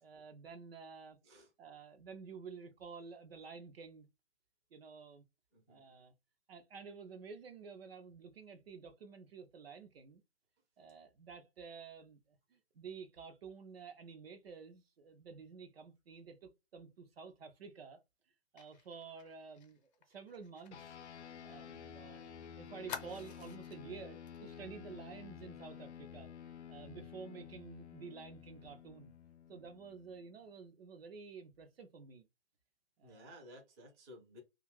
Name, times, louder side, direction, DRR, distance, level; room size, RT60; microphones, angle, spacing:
voice 1, 0.0-1.2 1.6-4.1 4.7-5.2 5.7-6.1 6.5-10.2 10.8-18.0 18.5-20.9 21.4-29.1 29.5-32.3 33.0-33.3, right 5 dB, 60° right, 0.6 m, -51 dB
Fire, 18.6-22.0 22.3-22.4 22.9-23.8 24.3-24.4 24.8-25.0, left 7 dB, 40° left, 0.7 m, -50 dB
sound 1, 20.7-30.4, left 8 dB, 75° left, 0.6 m, -52 dB
voice 2, 33.0-34.4, equal, 15° right, 0.6 m, -55 dB
2.6 x 2.4 x 3.0 m
hypercardioid pair, 140°, 34 cm